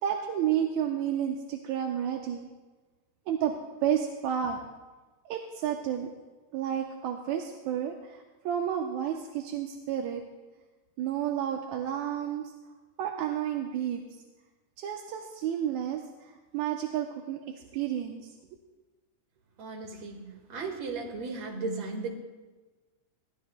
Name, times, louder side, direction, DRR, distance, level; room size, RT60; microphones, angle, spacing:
voice 1, 0.0-2.5 3.3-3.6 3.8-4.6 5.3-6.1 6.5-10.2 11.0-12.5 13.0-14.0 14.8-18.3, right 9 dB, 80° right, 2 dB, 2.1 m, -31 dB
voice 2, 19.6-22.1, right 3 dB, 60° right, 2 dB, 2.8 m, -36 dB
21.5 x 15.5 x 2.2 m, 1.2 s
omnidirectional pair, 3.4 m